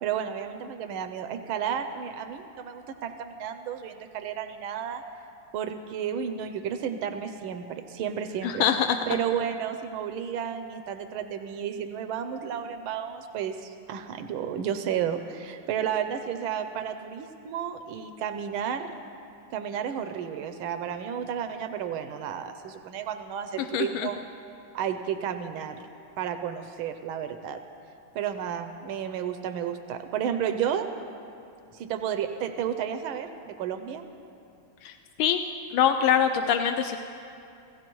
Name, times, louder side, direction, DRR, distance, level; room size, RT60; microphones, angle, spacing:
voice 1, 0.0-5.0 5.5-8.7 9.1-18.9 19.5-24.2 24.7-25.8 26.2-27.6 28.1-30.9 31.7-34.0, right 8 dB, 85° right, 8 dB, 1.5 m, -32 dB
voice 2, 8.4-9.0 23.7-24.1 34.8-34.9 35.2-35.4 35.7-37.0, left 8 dB, 85° left, 6 dB, 1.5 m, -23 dB
28.0 x 16.5 x 3.0 m, 2.6 s
omnidirectional pair, 2.2 m